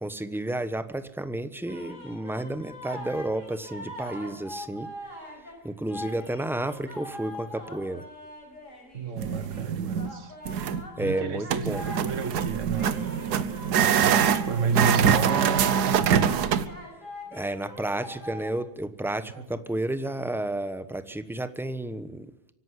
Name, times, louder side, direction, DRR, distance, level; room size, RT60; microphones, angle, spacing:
voice 1, 0.0-4.9 5.6-8.0 11.0-11.8 17.3-22.3, right 1 dB, ahead, 12 dB, 0.7 m, -31 dB
sound 1, 1.7-5.6 5.9-9.7 9.9-18.6, left 1 dB, 50° left, 5.7 m, -42 dB
voice 2, 8.9-10.4 11.0-13.0 13.8-15.7 19.3-19.5, right 5 dB, 50° right, 13 dB, 1.5 m, -31 dB
sound 2, 9.2-10.1 10.5-10.8 11.5-16.7, right 8 dB, 75° right, 1.5 m, -24 dB
24.5 x 11.5 x 9.6 m, 0.89 s
omnidirectional pair, 1.8 m